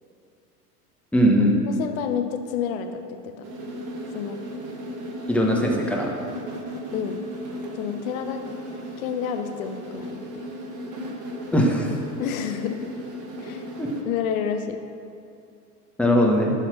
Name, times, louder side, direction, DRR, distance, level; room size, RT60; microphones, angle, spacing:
voice 1, 1.1-1.5 5.3-6.1 11.5-12.0 13.8-13.9 16.0-16.5, equal, 5° left, -2 dB, 1.4 m, -20 dB
voice 2, 1.7-3.5 4.1-4.4 6.9-7.2 7.7-8.4 9.0-10.4 12.2-12.8 13.4-13.6 14.1-14.8, left 8 dB, 60° left, 7 dB, 1.0 m, -29 dB
sound 1, 3.4-14.0, equal, 40° right, 1.6 m, -36 dB
12.0 x 4.2 x 6.2 m, 2.5 s
hypercardioid pair, 90°, 47 cm